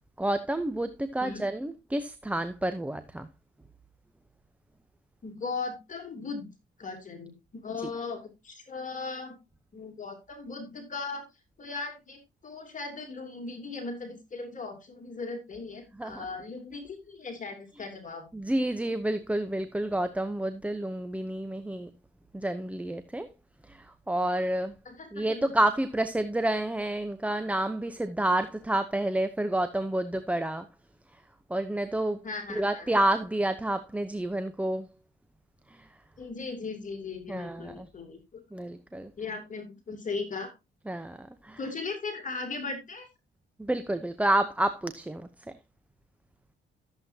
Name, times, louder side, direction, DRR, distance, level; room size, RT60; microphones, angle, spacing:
voice 1, 0.2-3.3 16.0-16.3 18.3-21.9 22.3-23.3 23.7-24.8 25.1-30.7 31.5-32.2 32.5-34.9 35.7-35.9 37.3-37.9 38.5-39.1 40.9-41.6 43.6-45.3, right 1 dB, 5° right, 0.9 m, -29 dB
voice 2, 5.2-6.5 6.8-9.4 9.7-11.3 11.6-18.2 24.8-25.4 32.2-32.9 36.2-38.4 39.2-40.5 41.6-43.1, left 4 dB, 40° left, 3.1 m, -38 dB
14.0 x 7.9 x 2.8 m
cardioid pair, 90°, 20 cm